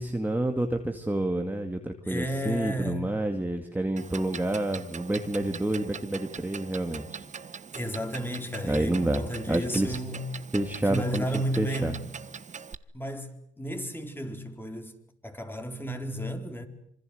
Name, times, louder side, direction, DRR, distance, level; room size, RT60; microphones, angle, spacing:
voice 1, 0.0-7.3 8.6-10.0 10.5-12.0, right 1 dB, 10° right, 2.2 m, -29 dB
voice 2, 2.1-3.1 7.7-10.3 10.8-12.1 12.9-13.3 13.6-14.9 15.2-16.7, equal, 10° left, 4.3 m, -33 dB
Clock, 4.0-12.7, right 6 dB, 40° right, 1.2 m, -42 dB
26.5 x 24.5 x 8.0 m
cardioid pair, 90°, 20 cm